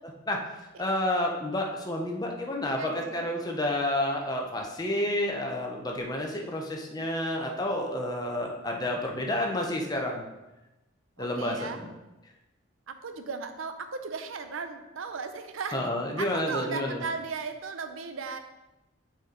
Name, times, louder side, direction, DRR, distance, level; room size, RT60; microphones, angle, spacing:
voice 1, 0.8-10.3 11.2-11.9 15.7-17.0, left 1 dB, 20° left, 0 dB, 0.7 m, -30 dB
voice 2, 2.8-3.3 11.2-11.8 12.9-15.9 16.2-18.4, right 5 dB, 80° right, 8 dB, 0.6 m, -36 dB
6.3 x 4.3 x 3.8 m, 1.0 s
head